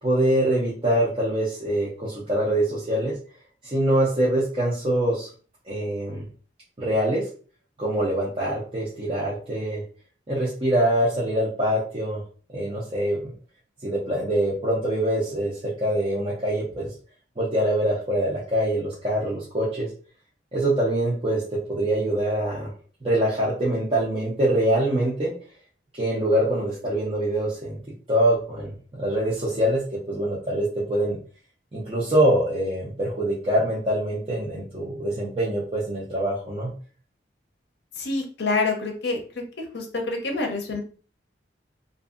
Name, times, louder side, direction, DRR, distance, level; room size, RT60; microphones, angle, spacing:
voice 1, 0.0-3.2 3.6-5.3 5.7-6.3 6.8-7.2 7.8-9.8 10.3-12.2 12.5-13.3 13.8-16.9 17.4-19.9 20.5-21.4 21.7-22.7 23.0-25.3 25.9-27.8 28.1-29.8 30.1-31.2 31.7-36.7, right 1 dB, 30° right, -7 dB, 0.7 m, -24 dB
voice 2, 38.0-39.5 39.7-40.8, left 3 dB, 60° left, 3 dB, 0.6 m, -27 dB
2.6 x 2.6 x 2.4 m, 0.40 s
head